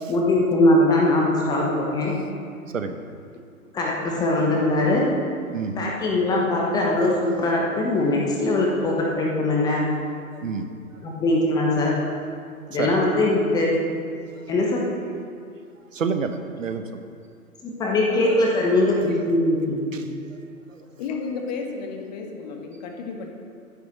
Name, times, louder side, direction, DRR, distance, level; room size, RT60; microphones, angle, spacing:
voice 1, 0.1-2.2 3.7-5.2 5.8-9.9 11.0-12.0 12.7-13.8 14.5-14.9 17.6-19.9, left 2 dB, 10° left, -2 dB, 1.1 m, -21 dB
voice 2, 2.7-3.0 5.5-5.9 9.5-9.6 10.3-10.7 11.9-12.1 12.7-13.1 14.4-14.5 15.9-17.1 18.1-19.0 19.9-20.4 20.7-20.8, right 5 dB, 60° right, 8 dB, 1.2 m, -31 dB
voice 3, 21.0-23.3, left 4 dB, 30° left, 2 dB, 1.6 m, -32 dB
12.0 x 9.9 x 6.2 m, 2.3 s
figure-of-eight pair, 125°, 44 cm